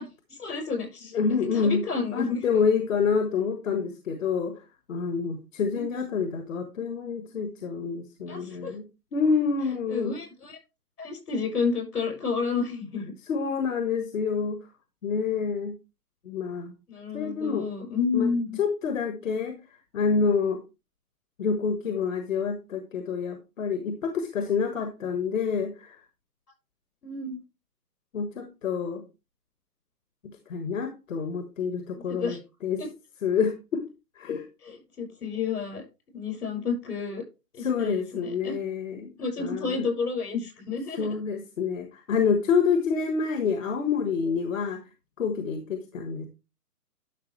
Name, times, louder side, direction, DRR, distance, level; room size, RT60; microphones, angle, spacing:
voice 1, 0.0-2.4 5.8-5.9 8.3-8.8 9.9-10.6 11.0-13.1 16.9-18.6 27.0-27.4 32.0-32.4 32.8-32.9 34.6-35.8 36.1-37.2 37.5-38.6 39.2-41.2, left 5 dB, 70° left, 2 dB, 6.1 m, -30 dB
voice 2, 1.1-1.8 2.1-4.6 4.9-8.8 9.1-10.1 13.3-14.6 15.0-15.8 16.2-16.7 17.1-17.7 18.1-18.3 18.6-19.6 19.9-20.6 21.4-26.0 28.1-29.0 30.5-32.4 32.6-32.8 33.2-33.9 34.1-34.4 37.6-39.1 39.4-39.8 41.0-44.8 45.2-46.3, left 5 dB, 55° left, 7 dB, 1.5 m, -27 dB
11.5 x 6.2 x 3.2 m, 0.28 s
hypercardioid pair, 155°, 47 cm